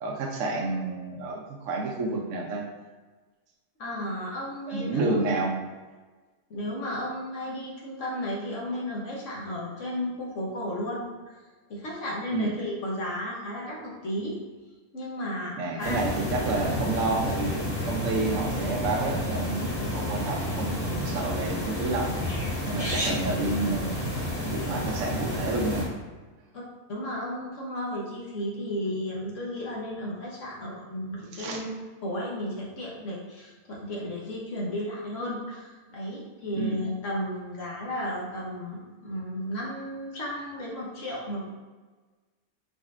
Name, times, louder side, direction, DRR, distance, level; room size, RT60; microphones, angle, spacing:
voice 1, 0.0-2.6 4.7-5.5 12.3-12.5 15.6-22.2 22.6-24.0 24.4-25.9 31.3-31.6 36.6-36.8, right 3 dB, 65° right, 0 dB, 1.0 m, -30 dB
voice 2, 3.8-5.2 6.5-11.1 11.7-14.4 14.9-16.0 26.9-31.7 32.0-41.5, left 1 dB, 60° left, -4 dB, 1.2 m, -33 dB
sound 1, 15.8-25.9, left 1 dB, 10° left, 1.1 m, -30 dB
4.0 x 4.0 x 2.5 m, 1.3 s
omnidirectional pair, 1.5 m